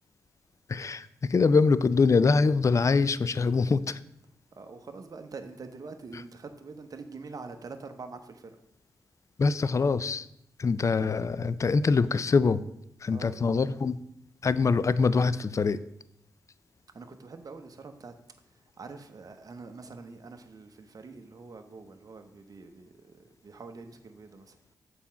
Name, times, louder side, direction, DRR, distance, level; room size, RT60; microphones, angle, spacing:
voice 1, 0.7-4.0 9.4-10.3 10.6-12.6 13.0-14.0 14.4-15.8, left 4 dB, 40° left, 16 dB, 0.4 m, -24 dB
voice 2, 4.6-8.6 13.1-13.4 16.9-18.1 18.5-24.6, right 4 dB, 50° right, 6 dB, 0.8 m, -45 dB
7.2 x 4.3 x 5.7 m, 0.77 s
supercardioid pair, 45°, 8 cm